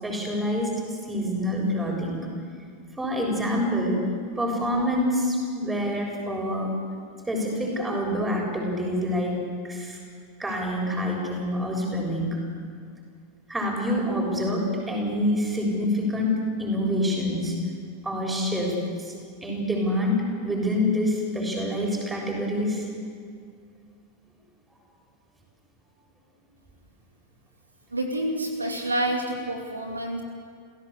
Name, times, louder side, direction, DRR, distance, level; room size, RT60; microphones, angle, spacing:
voice 1, 0.0-2.3 3.0-4.0 4.4-6.7 7.3-9.4 9.6-10.0 10.4-12.4 13.5-17.6 18.0-19.1 19.4-22.9, left 1 dB, 10° right, 0 dB, 7.1 m, -26 dB
voice 2, 27.9-30.2, right 1 dB, 80° right, 3 dB, 2.7 m, -28 dB
29.5 x 16.5 x 8.5 m, 2.2 s
figure-of-eight pair, 90°, 0 cm